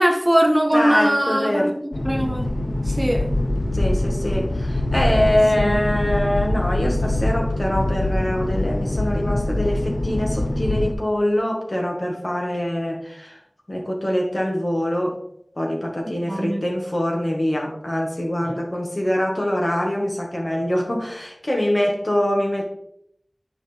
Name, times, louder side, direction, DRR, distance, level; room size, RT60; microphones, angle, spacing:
voice 1, 0.0-2.5 2.9-3.3 16.3-16.6, equal, 15° right, 6 dB, 0.6 m, -20 dB
voice 2, 0.7-1.7 3.7-13.4 13.7-15.2 15.5-22.7, left 1 dB, 45° left, 0 dB, 1.7 m, -24 dB
sound 1, 1.9-10.9, left 1 dB, 70° left, 0.7 m, -23 dB
9.4 x 5.0 x 3.4 m, 0.73 s
wide cardioid pair, 45°, 0 cm